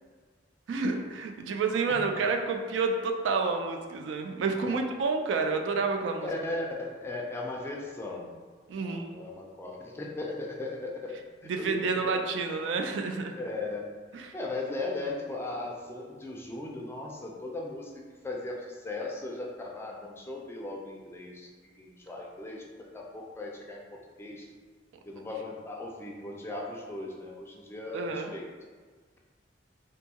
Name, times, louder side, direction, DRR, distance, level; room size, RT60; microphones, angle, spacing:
voice 1, 0.7-6.3 8.7-9.2 11.5-13.3 14.1-14.3 27.9-28.3, right 4 dB, 85° right, 5 dB, 0.3 m, -29 dB
voice 2, 6.2-8.3 8.8-12.2 13.4-13.9 14.3-17.9 18.2-24.5 25.0-28.5, left 2 dB, 15° left, -1 dB, 0.3 m, -37 dB
2.6 x 2.3 x 2.8 m, 1.5 s
head